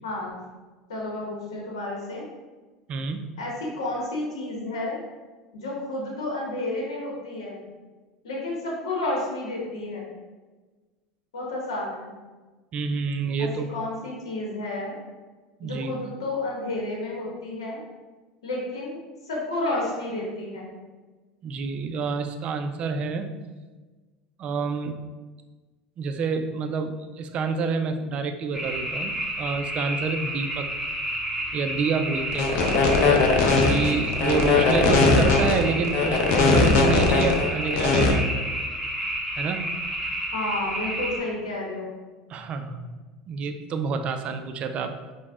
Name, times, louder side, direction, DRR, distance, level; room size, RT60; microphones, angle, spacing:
voice 1, 0.9-2.3 3.4-5.0 5.5-7.6 8.2-10.1 11.3-12.2 13.4-15.0 15.6-17.8 18.4-20.7 40.3-42.0, left 2 dB, 85° left, -3 dB, 0.8 m, -31 dB
voice 2, 2.9-3.3 12.7-13.7 15.6-15.9 21.4-23.4 24.4-25.0 26.0-30.8 31.5-32.8 33.6-38.5 39.4-39.7 42.3-42.9 43.3-45.0, right 4 dB, 45° right, 8 dB, 0.3 m, -28 dB
sound 1, 28.5-41.2, right 1 dB, 5° right, 0.8 m, -31 dB
sound 2, 32.3-38.1, left 3 dB, 60° left, 0.5 m, -20 dB
5.1 x 2.1 x 2.3 m, 1.3 s
hypercardioid pair, 85°, 3 cm